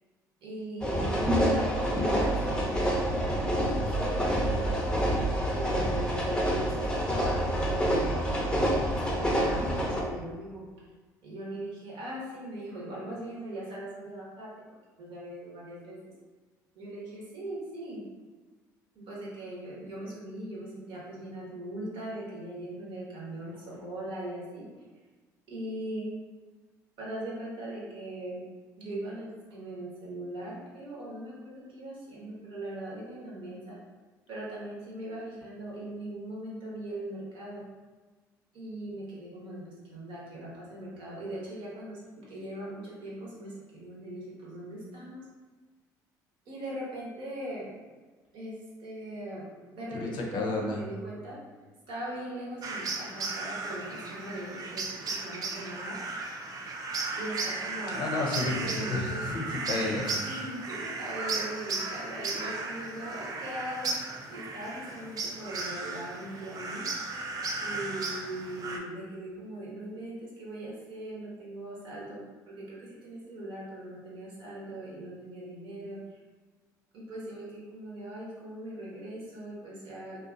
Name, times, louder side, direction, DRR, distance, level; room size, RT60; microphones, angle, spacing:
voice 1, 0.4-1.7 2.0-4.8 5.5-8.4 8.7-10.6 11.2-14.5 15.0-16.0 16.7-18.0 18.9-24.7 25.5-26.1 27.0-28.4 28.8-33.8 34.3-37.6 38.5-45.2 46.5-47.7 48.3-48.5 48.8-49.4 49.7-51.4 51.9-56.0 57.1-58.0 58.5-59.3 60.2-63.9 64.3-66.8 67.6-72.2 72.5-76.2 76.9-80.2, right 1 dB, 60° right, -5 dB, 0.9 m, -40 dB
sound 1, 0.8-10.0, equal, 10° left, 0.6 m, -27 dB
voice 2, 49.9-50.8 57.9-60.2, left 2 dB, 50° left, 0 dB, 0.6 m, -31 dB
sound 2, 52.6-68.8, right 3 dB, 40° right, 0.4 m, -35 dB
2.6 x 2.3 x 2.4 m, 1.3 s
hypercardioid pair, 55°, 10 cm